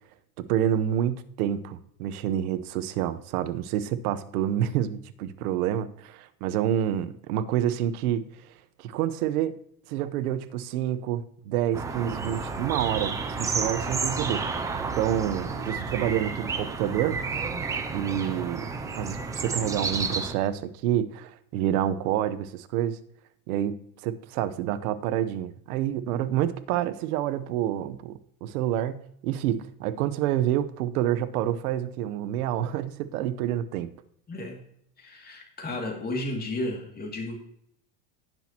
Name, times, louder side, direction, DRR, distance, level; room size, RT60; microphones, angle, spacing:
voice 1, 0.4-8.3 8.8-9.6 9.9-14.4 14.9-17.2 17.9-18.7 19.0-23.0 23.5-23.8 24.0-33.9, right 11 dB, 75° right, 11 dB, 1.0 m, -28 dB
sound 1, 11.7-20.3, right 4 dB, 10° right, 0.3 m, -31 dB
voice 2, 34.3-34.6 35.0-37.4, left 1 dB, 20° left, 2 dB, 2.4 m, -33 dB
18.0 x 6.2 x 2.9 m, 0.71 s
supercardioid pair, 150°, 44 cm